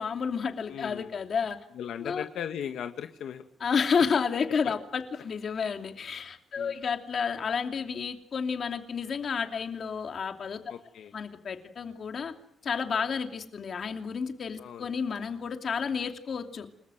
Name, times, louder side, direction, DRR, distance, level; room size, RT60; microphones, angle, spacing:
voice 1, 0.0-1.6 2.0-2.2 3.6-10.6 11.1-12.3 12.6-16.7, left 6 dB, 45° left, 5 dB, 2.8 m, -31 dB
voice 2, 0.7-1.1 1.8-3.4 4.6-4.7 6.6-6.7 10.7-11.1 14.6-14.9, left 9 dB, 85° left, 7 dB, 1.7 m, -37 dB
29.0 x 20.5 x 7.9 m, 0.66 s
wide cardioid pair, 160°, 0 cm